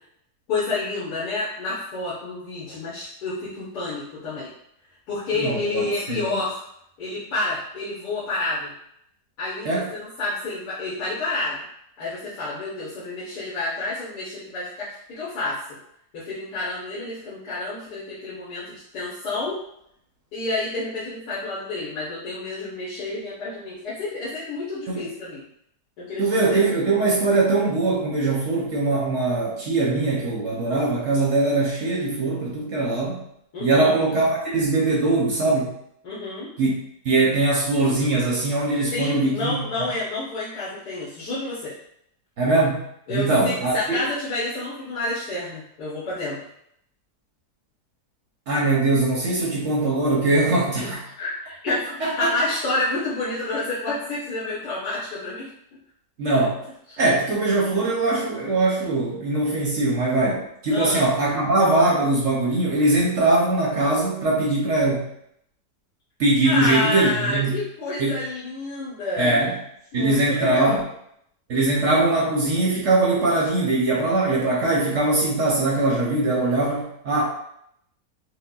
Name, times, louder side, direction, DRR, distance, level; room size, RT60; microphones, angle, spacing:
voice 1, 0.5-4.5 5.1-6.6 7.0-8.7 9.4-11.6 12.0-15.8 16.1-19.6 20.3-25.4 26.0-26.6 33.5-33.9 36.0-36.5 38.9-41.7 43.1-46.4 50.8-50.9 51.2-55.5 56.9-57.0 60.7-61.0 66.4-69.4 69.9-70.8, left 2 dB, 80° left, -10 dB, 1.5 m, -29 dB
voice 2, 5.3-6.2 9.6-9.9 24.9-25.0 26.2-33.2 33.6-35.7 36.6-36.7 37.0-39.6 42.4-42.8 43.1-44.0 48.5-51.0 52.0-52.3 56.2-56.6 57.0-65.1 66.2-67.6 68.0-68.2 69.2-69.5 69.9-70.8 71.5-77.2, right 2 dB, 55° right, -4 dB, 0.9 m, -21 dB
5.2 x 2.1 x 2.3 m, 0.73 s
omnidirectional pair, 1.7 m